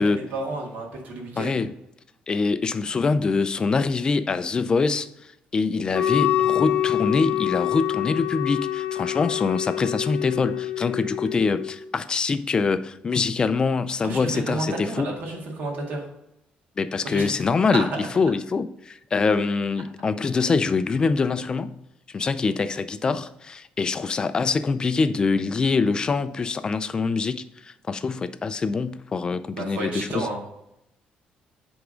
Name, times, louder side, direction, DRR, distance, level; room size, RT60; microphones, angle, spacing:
voice 1, 0.0-1.6 14.0-16.1 17.1-17.4 17.7-17.9 29.5-30.4, right 2 dB, 75° right, 1.9 m, -31 dB
voice 2, 1.3-1.7 2.3-5.1 5.5-15.1 16.8-17.9 18.2-21.8 22.1-30.3, left 4 dB, 30° left, 0.4 m, -24 dB
Wind instrument woodwind instrument, 5.9-11.8, left 12 dB, 85° left, 0.8 m, -26 dB
8.0 x 3.6 x 5.1 m
cardioid pair, 135°, 3 cm